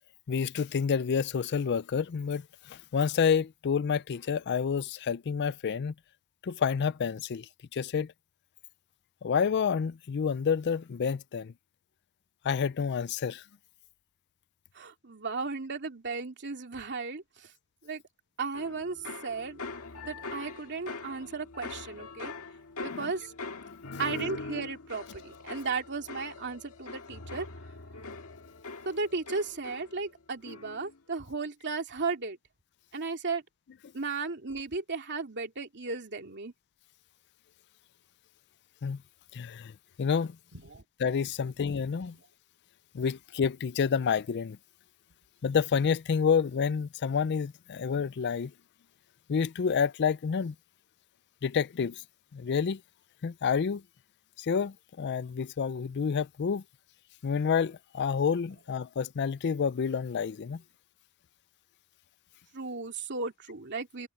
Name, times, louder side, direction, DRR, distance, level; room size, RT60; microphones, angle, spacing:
voice 1, 0.3-5.9 6.4-8.1 9.2-11.5 12.4-13.4 22.9-23.1 23.7-24.0 38.8-39.0 39.3-39.7 40.0-40.4 41.0-42.2 42.9-44.6 45.4-48.5 49.3-50.5 51.4-52.0 52.3-52.8 53.2-53.8 54.4-56.6 57.2-60.6, left 6 dB, 50° left, 0.4 m, -29 dB
voice 2, 14.7-17.5 17.8-18.0 18.4-19.0 19.2-19.6 20.0-22.3 22.8-23.3 24.0-27.5 28.8-32.4 32.9-33.4 33.9-36.5 40.5-40.8 62.5-64.1, right 4 dB, 50° right, 2.7 m, -35 dB
sound 1, 18.5-30.2 30.4-31.0, left 3 dB, 70° left, 2.0 m, -42 dB
head